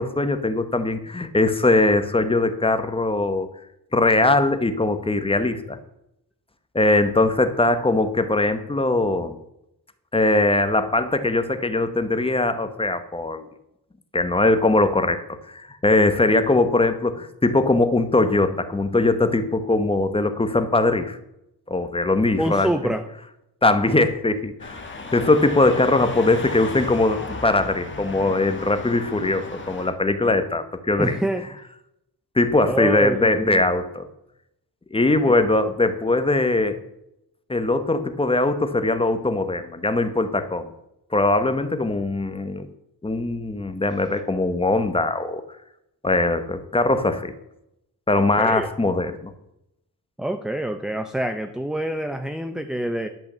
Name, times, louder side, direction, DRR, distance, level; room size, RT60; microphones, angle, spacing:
voice 1, 0.0-3.5 3.9-5.8 6.7-9.4 10.1-13.5 14.1-15.2 15.5-21.2 21.7-22.7 23.6-24.8 25.1-31.2 32.3-34.1 34.9-36.8 37.5-40.7 41.1-42.7 43.0-45.4 46.0-47.3 48.1-49.3, left 2 dB, 15° left, 10 dB, 0.9 m, -21 dB
voice 2, 22.4-23.0 31.0-31.4 32.7-33.6 35.3-35.4 44.1-44.2 48.1-48.7 50.2-53.1, right 1 dB, ahead, 8 dB, 0.5 m, -26 dB
sound 1, 24.6-29.9, left 3 dB, 30° left, 1.4 m, -35 dB
11.0 x 5.8 x 7.3 m, 0.84 s
wide cardioid pair, 145°, 40 cm